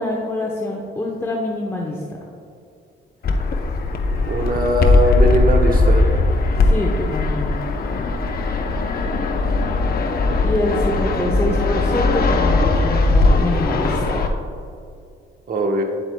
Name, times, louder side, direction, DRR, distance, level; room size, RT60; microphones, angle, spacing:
voice 1, 0.0-2.0 6.6-7.7 10.4-14.2, left 1 dB, 15° left, -2 dB, 0.9 m, -25 dB
Fixed-wing aircraft airplane, 3.2-14.3, left 2 dB, 50° left, 0.8 m, -19 dB
voice 2, 4.3-6.1 15.5-15.8, right 1 dB, 45° right, 3 dB, 1.1 m, -20 dB
9.4 x 7.8 x 2.3 m, 2.4 s
cardioid pair, 90°, 20 cm